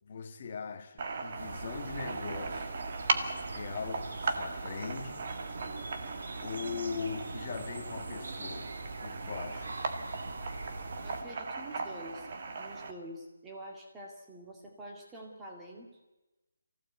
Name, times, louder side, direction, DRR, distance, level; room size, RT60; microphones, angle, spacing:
voice 1, 0.0-2.7 3.5-5.3 6.4-8.8 9.0-9.8, left 5 dB, 25° left, 1.7 m, -40 dB
sound 1, 1.0-12.9, right 4 dB, 30° right, 1.4 m, -38 dB
sound 2, 1.4-11.2, right 3 dB, 55° right, 2.3 m, -43 dB
voice 2, 11.0-12.3 12.6-15.9, right 1 dB, 5° right, 2.1 m, -46 dB
24.0 x 15.5 x 8.2 m
hypercardioid pair, 180°, 0 cm